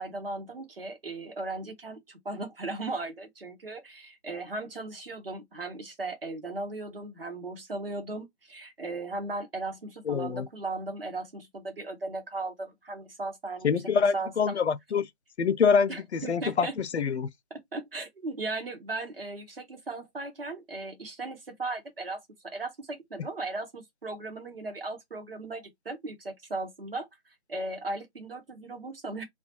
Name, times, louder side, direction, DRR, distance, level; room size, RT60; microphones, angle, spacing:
voice 1, 0.0-14.3 15.9-16.7 17.5-27.1 27.5-29.2, right 2 dB, 55° right, 1.0 m, -37 dB
voice 2, 10.1-10.5 13.6-15.1 15.4-17.3, left 6 dB, 75° left, 0.5 m, -25 dB
2.3 x 2.2 x 2.8 m
figure-of-eight pair, 165°, 34 cm